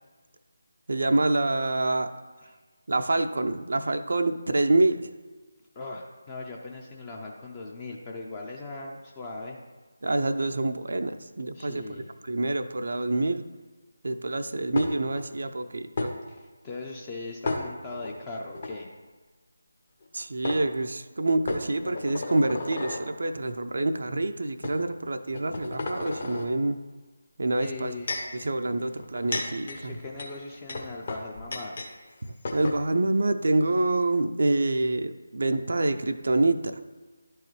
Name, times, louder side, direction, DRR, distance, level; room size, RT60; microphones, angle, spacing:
voice 1, 0.9-2.1 2.9-5.1 10.0-13.4 14.0-16.1 20.1-26.8 27.4-27.9 28.3-30.0 32.3-36.8, right 2 dB, 55° right, 8 dB, 0.4 m, -26 dB
voice 2, 5.8-9.6 11.5-12.1 16.3-18.9 27.6-28.1 29.7-31.8, left 3 dB, 20° left, 0 dB, 0.6 m, -39 dB
sound 1, 14.8-15.2 16.0-16.1 17.4-18.1 18.5-18.7 20.0-20.1 20.4-20.6 21.5-23.1 23.8-24.0 24.6-24.8 25.3-26.5 27.6-28.4 29.0-31.9 32.2-32.3 32.4-32.8, left 2 dB, 45° left, 1.1 m, -33 dB
11.5 x 4.6 x 3.1 m, 1.3 s
figure-of-eight pair, 155°, 0 cm